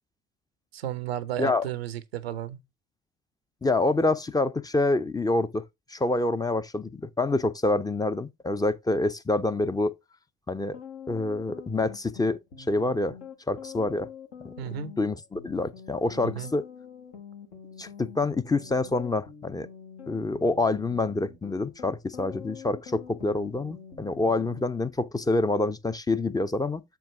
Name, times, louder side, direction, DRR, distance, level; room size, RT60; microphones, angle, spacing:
voice 1, 0.7-2.6 14.6-14.9 16.2-16.5, right 10 dB, 80° right, 0.6 m, -33 dB
voice 2, 3.6-5.6 5.9-9.9 10.5-10.8 11.1-12.4 12.7-13.1 13.5-14.1 14.4-14.5 15.0-16.6 17.8-19.7 20.1-26.8, left 2 dB, 10° left, 0.5 m, -27 dB
sound 1, 10.7-24.6, left 7 dB, 70° left, 1.3 m, -45 dB
7.3 x 4.6 x 3.4 m
figure-of-eight pair, 45°, 30 cm